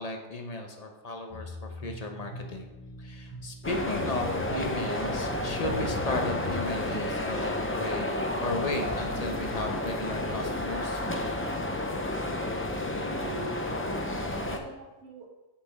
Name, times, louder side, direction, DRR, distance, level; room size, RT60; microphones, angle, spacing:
voice 1, 0.0-2.7 3.0-8.1 8.4-11.0, left 2 dB, 35° left, 3 dB, 0.9 m, -35 dB
sound 1, 1.3-6.6, left 2 dB, 5° right, 2.8 m, -42 dB
sound 2, 3.6-14.6, left 1 dB, 15° left, 0.4 m, -31 dB
sound 3, 4.0-10.2 11.2-12.3, equal, 20° right, 1.6 m, -46 dB
voice 2, 12.7-15.3, right 3 dB, 70° right, -1 dB, 1.2 m, -43 dB
6.6 x 5.9 x 4.9 m, 1.1 s
omnidirectional pair, 1.3 m